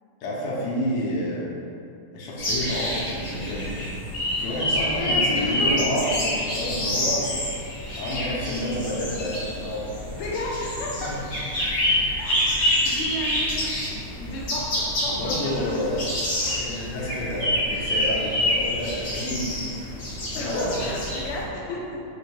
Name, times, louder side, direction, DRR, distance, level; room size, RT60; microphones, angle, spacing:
voice 1, 0.2-1.5 2.1-3.7 4.4-7.2 8.0-10.3 11.2-11.3 11.9-12.0 15.1-16.0 16.6-19.9 20.3-20.7, equal, 70° left, -5 dB, 1.2 m, -29 dB
sound 1, 2.4-21.4, left 1 dB, 50° left, 1.4 m, -27 dB
voice 2, 4.2-5.7 10.2-11.1 12.2-16.0 16.4-16.9 20.3-21.8, left 1 dB, 85° left, -3 dB, 1.5 m, -33 dB
4.4 x 2.2 x 2.8 m, 2.7 s
omnidirectional pair, 2.4 m